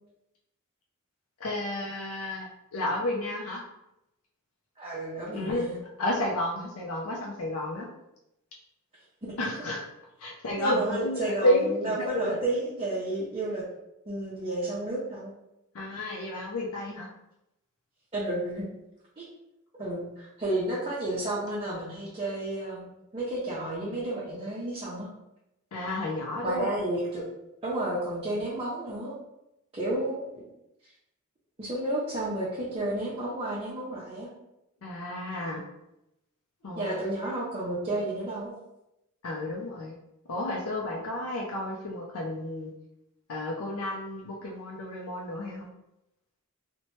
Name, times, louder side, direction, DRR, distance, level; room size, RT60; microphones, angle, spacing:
voice 1, 1.4-3.6 5.3-5.7 6.0-7.9 9.4-9.8 10.2-12.4 15.7-17.1 25.7-26.7 34.8-35.6 36.6-37.0 39.2-39.9 40.3-42.7 43.3-45.7, left 1 dB, 70° left, -2 dB, 0.4 m, -31 dB
voice 2, 4.8-5.8 9.2-9.3 10.6-13.7 14.1-15.3 18.1-18.7 19.2-19.3 19.8-25.1 26.4-27.3 27.6-29.2 29.7-30.4 31.6-34.3 36.7-38.5, right 1 dB, 25° right, -7 dB, 0.5 m, -31 dB
2.8 x 2.1 x 3.0 m, 0.87 s
head